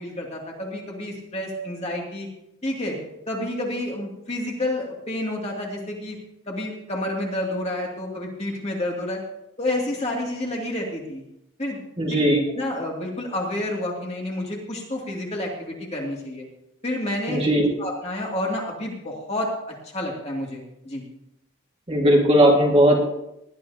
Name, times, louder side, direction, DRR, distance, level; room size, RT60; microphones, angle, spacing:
voice 1, 0.0-2.3 2.6-3.0 3.3-6.2 6.5-9.2 9.6-11.2 11.6-11.8 12.1-12.2 12.6-16.4 16.8-21.0, left 1 dB, 30° left, -1 dB, 2.6 m, -29 dB
voice 2, 12.0-12.4 17.3-17.7 21.9-23.0, equal, 25° right, -1 dB, 2.0 m, -17 dB
19.5 x 12.0 x 2.9 m, 0.84 s
head